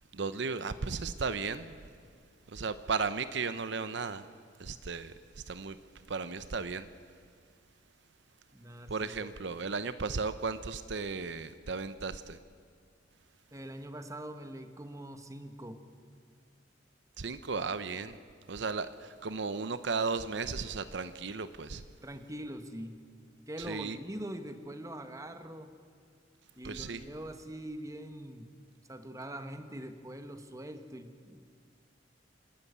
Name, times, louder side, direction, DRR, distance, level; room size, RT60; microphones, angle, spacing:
voice 1, 0.1-1.8 2.5-4.2 4.6-5.8 6.1-6.9 8.9-12.4 17.2-18.2 18.5-21.8 23.6-24.0 26.6-27.0, right 4 dB, 65° right, 12 dB, 0.7 m, -35 dB
voice 2, 8.5-9.3 13.5-15.8 22.0-23.0 23.5-25.7 26.5-28.5 28.9-31.5, right 1 dB, 20° right, 8 dB, 1.3 m, -43 dB
27.5 x 13.0 x 8.2 m, 2.1 s
head